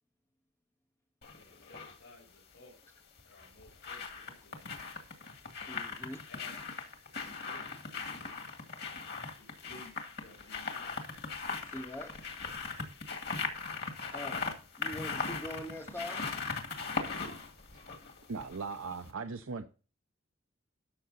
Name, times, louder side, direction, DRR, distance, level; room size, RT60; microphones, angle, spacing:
sound 1, 1.2-2.0 3.2-18.7 19.0-19.1, left 4 dB, 50° left, 2.1 m, -39 dB
voice 1, 1.4-2.9 3.2-4.7 6.3-6.5 7.2-7.8 8.1-8.6 9.3-11.3, left 2 dB, 65° left, 4.0 m, -57 dB
voice 2, 5.7-6.2 11.6-12.2 14.1-14.5 14.8-16.3, left 1 dB, 10° left, 0.5 m, -43 dB
voice 3, 18.3-19.7, right 4 dB, 75° right, 0.7 m, -38 dB
13.0 x 6.9 x 4.1 m
head